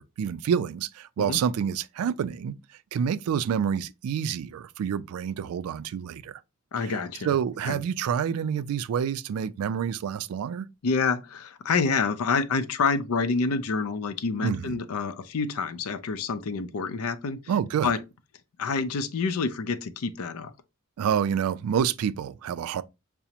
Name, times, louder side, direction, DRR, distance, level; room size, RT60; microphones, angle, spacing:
voice 1, 0.0-2.5 2.9-6.4 6.8-6.9 7.2-10.7 14.4-14.8 17.5-17.9 21.0-22.8, right 8 dB, 85° right, 0.3 m, -28 dB
voice 2, 6.7-7.3 7.7-7.8 10.8-17.4 17.8-18.0 18.6-20.5, left 4 dB, 85° left, 0.5 m, -27 dB
5.8 x 2.0 x 2.7 m
head